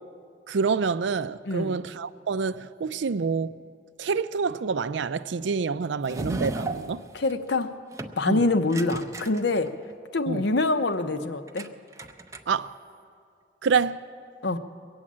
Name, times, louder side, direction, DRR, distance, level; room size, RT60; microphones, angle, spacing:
voice 1, 0.5-3.6 4.0-7.0 8.3-8.4 10.3-10.5 12.5-12.7 13.6-14.0, right 5 dB, 75° right, 0.4 m, -27 dB
voice 2, 1.5-1.8 7.1-7.8 8.2-9.7 10.1-11.7 14.4-14.6, left 2 dB, 65° left, 0.7 m, -25 dB
sound 1, 6.0-7.6 7.9-8.2 8.7-9.9 11.5-11.7 11.9-12.7, right 2 dB, 15° right, 0.5 m, -35 dB
22.5 x 8.7 x 7.4 m
head